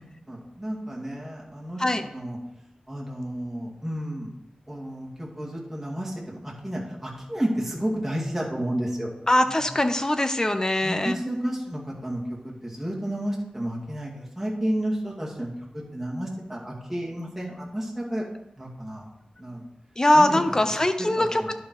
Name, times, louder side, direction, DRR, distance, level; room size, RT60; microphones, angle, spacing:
voice 1, 0.3-2.4 2.9-4.3 4.7-6.4 6.6-9.1 9.5-9.6 10.8-15.5 15.9-18.2 18.6-19.1 19.4-19.6 20.1-21.5, right 1 dB, 10° right, -5 dB, 2.3 m, -31 dB
voice 2, 9.3-11.2 20.0-21.5, left 1 dB, 25° left, 8 dB, 0.7 m, -22 dB
11.0 x 4.5 x 4.7 m, 0.92 s
wide cardioid pair, 90°, 3 cm